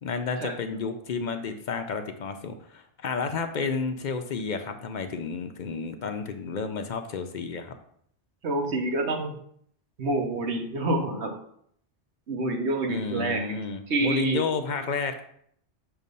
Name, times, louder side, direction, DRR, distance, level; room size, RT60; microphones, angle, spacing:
voice 1, 0.0-7.8 12.9-15.2, left 5 dB, 55° left, 7 dB, 0.5 m, -31 dB
voice 2, 8.4-9.3 10.0-11.3 12.3-13.4 13.9-14.4, right 2 dB, 70° right, 2 dB, 1.2 m, -27 dB
6.7 x 2.7 x 5.2 m, 0.66 s
omnidirectional pair, 1.2 m